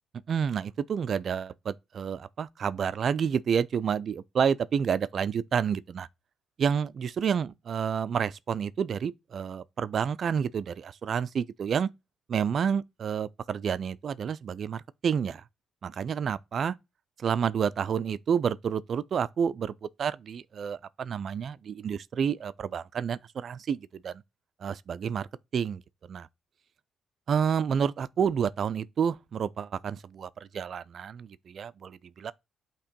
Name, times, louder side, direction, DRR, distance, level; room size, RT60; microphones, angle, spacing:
voice 1, 0.3-6.1 6.6-11.9 12.3-15.4 15.8-16.8 17.2-24.2 24.6-25.8 26.1-26.3 27.3-32.3, right 7 dB, 55° right, 0.4 m, -29 dB
8.5 x 3.0 x 5.1 m
cardioid pair, 90°, 0 cm